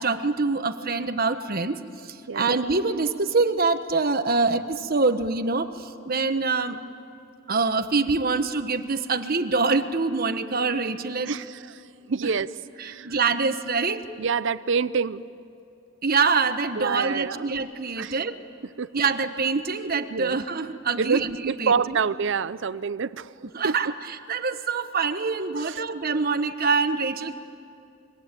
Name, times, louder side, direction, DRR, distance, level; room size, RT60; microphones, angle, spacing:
voice 1, 0.0-6.8 7.5-11.3 12.8-14.1 16.0-18.4 18.9-22.0 23.5-27.4, right 4 dB, 50° right, 9 dB, 1.3 m, -25 dB
voice 2, 11.3-11.8 12.1-12.5 12.8-13.2 14.2-15.2 16.8-17.5 18.0-18.2 18.8-18.9 20.1-20.4 21.0-23.9 25.6-25.8, right 5 dB, 65° right, 16 dB, 0.6 m, -27 dB
26.5 x 23.5 x 9.0 m, 2.7 s
head